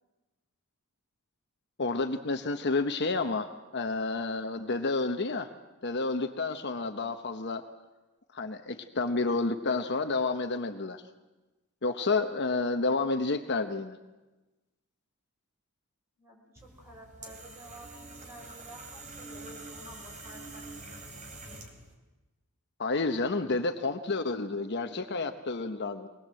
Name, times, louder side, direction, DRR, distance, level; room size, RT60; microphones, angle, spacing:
voice 1, 1.8-5.5 5.8-7.6 8.3-11.0 11.8-14.0 22.8-26.1, left 3 dB, 55° left, 7 dB, 1.1 m, -30 dB
voice 2, 16.2-20.7 23.0-23.5, equal, 15° right, -1 dB, 6.3 m, -51 dB
sound 1, 16.6-21.9, right 3 dB, 35° right, 3.3 m, -46 dB
23.0 x 20.0 x 7.7 m, 1.1 s
head